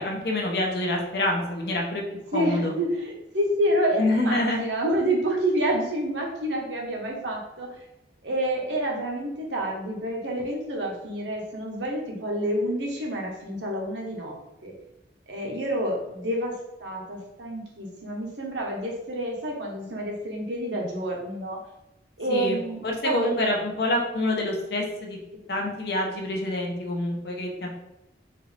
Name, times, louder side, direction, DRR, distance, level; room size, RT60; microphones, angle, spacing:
voice 1, 0.0-2.0 2.3-2.7 4.0-4.7 22.3-25.2 25.5-27.7, left 1 dB, 60° left, 0 dB, 0.8 m, -27 dB
voice 2, 2.3-7.7 8.2-14.4 14.6-14.7 15.3-16.5 16.8-21.6 22.2-23.3, right 1 dB, 85° right, -1 dB, 1.0 m, -28 dB
4.3 x 2.6 x 3.3 m, 0.92 s
head